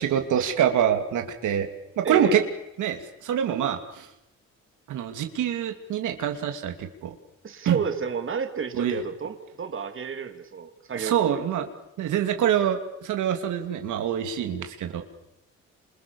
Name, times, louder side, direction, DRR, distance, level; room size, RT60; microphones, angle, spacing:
voice 1, 0.0-1.7 2.0-2.4 2.8-4.1 4.9-7.1 7.6-7.8 8.7-9.0 11.0-11.7 12.0-15.0, right 9 dB, 80° right, 5 dB, 2.8 m, -25 dB
voice 2, 2.0-2.4 7.4-11.7, right 6 dB, 45° right, 6 dB, 3.1 m, -31 dB
29.0 x 27.5 x 7.2 m, 0.91 s
cardioid pair, 90°, 30 cm